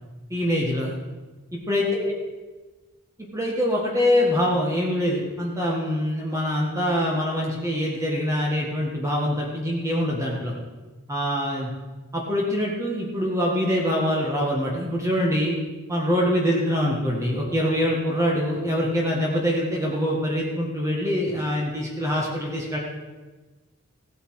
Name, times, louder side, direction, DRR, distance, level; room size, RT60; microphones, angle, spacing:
voice 1, 0.3-0.9 1.7-2.1 3.3-10.5 11.1-11.7 12.1-15.6 15.9-22.8, equal, 15° right, -3 dB, 1.7 m, -24 dB
16.5 x 8.0 x 4.8 m, 1.2 s
head